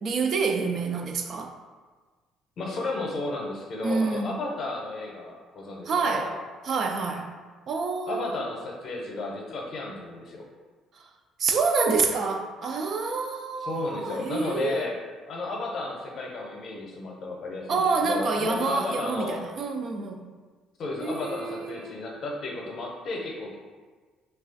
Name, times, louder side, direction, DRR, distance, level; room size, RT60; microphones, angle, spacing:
voice 1, 0.0-1.5 3.8-4.4 5.9-6.3 6.6-7.3 7.7-8.5 11.4-14.9 17.7-20.2 21.0-22.2, right 4 dB, 45° right, 4 dB, 0.3 m, -27 dB
voice 2, 2.6-6.4 8.1-10.4 13.6-14.9 15.3-19.4 20.8-23.6, left 2 dB, 45° left, 0 dB, 0.7 m, -33 dB
3.1 x 2.3 x 3.8 m, 1.4 s
cardioid pair, 140°, 0 cm